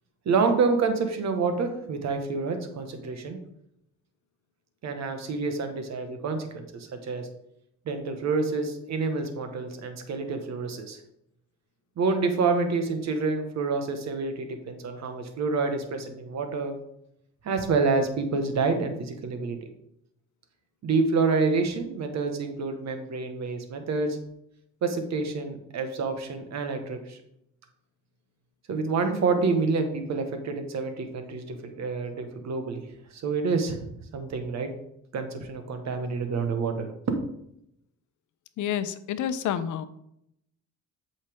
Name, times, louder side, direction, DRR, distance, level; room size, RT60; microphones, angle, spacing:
voice 1, 0.2-3.4 4.8-7.3 7.8-11.0 12.0-16.8 17.4-19.6 20.8-24.2 24.8-27.2 28.7-32.8 33.1-34.7 35.1-37.2, right 4 dB, 60° right, 6 dB, 1.4 m, -28 dB
voice 2, 38.6-39.9, left 9 dB, 80° left, 13 dB, 0.7 m, -29 dB
8.3 x 5.6 x 3.6 m, 0.78 s
cardioid pair, 90°, 30 cm